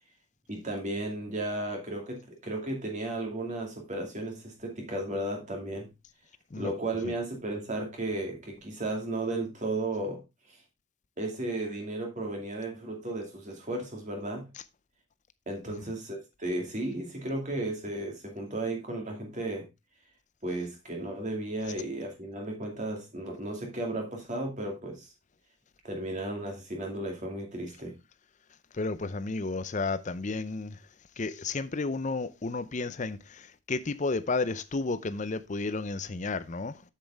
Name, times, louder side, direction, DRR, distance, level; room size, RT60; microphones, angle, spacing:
voice 1, 0.5-5.9 6.6-10.2 11.2-14.5 15.5-19.7 20.4-25.1 25.8-28.0, right 2 dB, 35° right, 2.4 m, -34 dB
voice 2, 28.7-30.8 31.2-36.8, left 3 dB, 35° left, 0.6 m, -32 dB
7.5 x 7.2 x 3.5 m
head